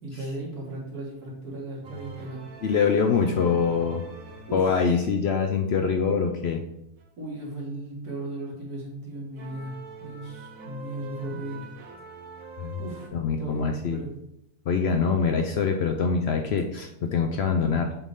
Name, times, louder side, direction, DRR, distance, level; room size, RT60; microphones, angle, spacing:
voice 1, 0.0-2.5 4.5-4.8 7.2-11.7 12.8-13.1 13.4-14.1, right 1 dB, 85° right, -3 dB, 2.3 m, -36 dB
sound 1, 1.8-5.2 5.8-5.9 7.0-7.1 9.4-13.1, right 2 dB, 70° right, 1.3 m, -44 dB
voice 2, 2.6-4.0 4.5-6.6 12.6-12.8 13.1-14.0 14.7-17.9, left 5 dB, 65° left, 5 dB, 0.6 m, -24 dB
7.0 x 3.9 x 3.6 m, 0.82 s
omnidirectional pair, 1.6 m